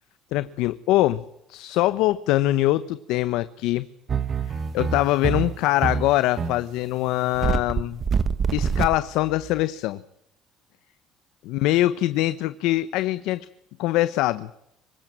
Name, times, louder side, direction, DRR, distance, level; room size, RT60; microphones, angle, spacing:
voice 1, 0.3-1.2 1.5-3.9 4.5-8.0 8.5-10.0 11.4-13.5 13.8-14.5, left 16 dB, 80° left, 14 dB, 1.0 m, -23 dB
sound 1, 4.1-9.6, right 6 dB, 30° right, 1.5 m, -26 dB
24.5 x 20.0 x 9.0 m, 0.78 s
cardioid pair, 150°, 0 cm